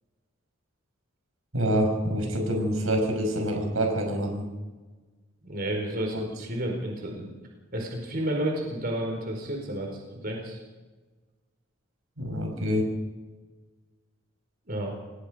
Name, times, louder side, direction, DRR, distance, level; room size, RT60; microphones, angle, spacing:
voice 1, 1.5-4.5 12.2-12.8, equal, 80° right, 2 dB, 6.0 m, -26 dB
voice 2, 5.4-7.3 7.7-9.9 10.2-10.6 14.7-14.9, right 1 dB, 45° right, 1 dB, 4.9 m, -31 dB
29.0 x 19.0 x 5.2 m, 1.3 s
head